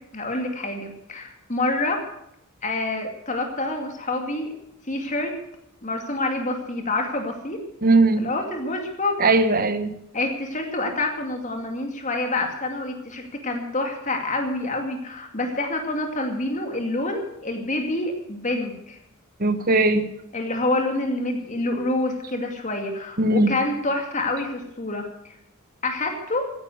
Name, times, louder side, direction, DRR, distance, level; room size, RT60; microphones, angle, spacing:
voice 1, 0.1-2.0 2.6-4.5 4.9-5.4 5.8-7.6 8.2-9.2 10.1-19.0 20.3-25.4 25.8-26.5, left 2 dB, 35° left, 3 dB, 2.4 m, -27 dB
voice 2, 7.8-8.3 9.2-9.9 19.4-20.1 23.2-23.5, right 2 dB, 45° right, 10 dB, 1.3 m, -19 dB
15.5 x 10.0 x 7.8 m, 0.76 s
head